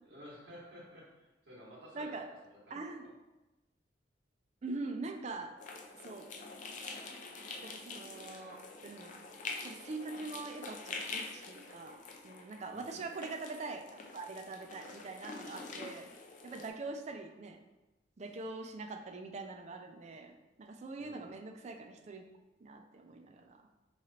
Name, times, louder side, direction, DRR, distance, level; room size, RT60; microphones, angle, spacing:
voice 1, 0.0-2.1 2.4-3.1 12.7-13.0 21.0-21.3, equal, 70° right, -5 dB, 1.4 m, -53 dB
voice 2, 1.9-2.3 2.7-3.0 4.6-5.5 6.0-6.3 7.6-9.2 9.6-16.1 16.4-17.6 18.2-22.2 22.6-23.7, right 3 dB, 40° right, 4 dB, 0.4 m, -43 dB
sound 1, 5.6-16.7, left 3 dB, 45° left, 0.4 m, -46 dB
4.9 x 3.1 x 2.8 m, 1.0 s
head